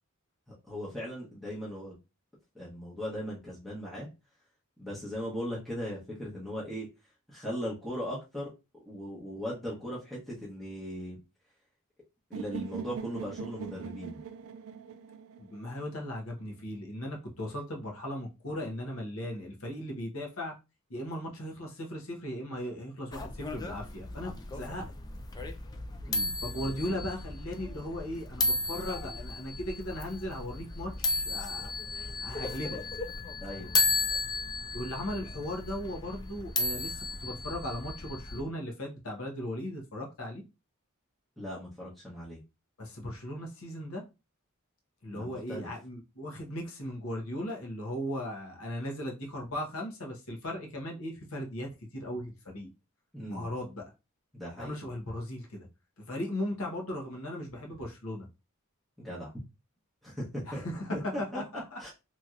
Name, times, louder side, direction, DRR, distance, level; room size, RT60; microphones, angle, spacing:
voice 1, 0.5-1.9 2.5-4.1 4.8-6.9 7.3-8.5 8.9-11.2 12.3-14.2 26.0-26.3 33.4-33.7 41.4-42.4 45.1-45.7 53.1-53.4 54.3-54.7 59.0-59.3 60.0-60.6 60.9-61.0 61.3-61.4 61.8-61.9, equal, ahead, 0.9 m, -38 dB
sound 1, 12.3-16.3, right 6 dB, 70° right, 0.3 m, -42 dB
voice 2, 15.4-20.5 20.9-24.9 26.4-31.7 32.2-32.8 34.7-40.4 42.8-44.0 45.0-52.7 53.3-53.8 54.6-55.6 56.0-58.3 60.5-61.9, left 1 dB, 70° left, 1.0 m, -37 dB
sound 2, 23.1-38.4, left 2 dB, 20° left, 0.3 m, -34 dB
3.0 x 2.8 x 2.4 m
head